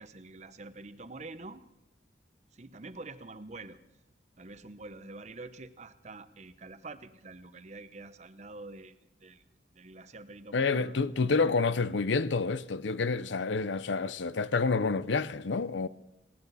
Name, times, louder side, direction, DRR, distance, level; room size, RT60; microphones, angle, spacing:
voice 1, 0.0-1.6 2.5-3.8 4.4-9.4 9.7-11.1 11.4-11.5, right 3 dB, 40° right, 0.8 m, -46 dB
voice 2, 10.5-15.9, left 4 dB, 80° left, 0.6 m, -28 dB
19.0 x 18.5 x 4.1 m
head